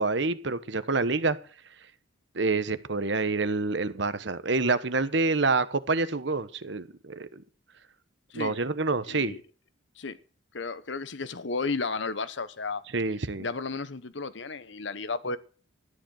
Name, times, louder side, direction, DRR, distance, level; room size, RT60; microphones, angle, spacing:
voice 1, 0.0-1.4 2.3-7.4 8.3-9.3 12.9-13.5, right 3 dB, 60° right, 1.1 m, -27 dB
voice 2, 9.0-9.4 10.0-10.2 10.5-12.8 13.4-15.4, left 4 dB, 65° left, 1.0 m, -33 dB
13.0 x 10.5 x 6.4 m
head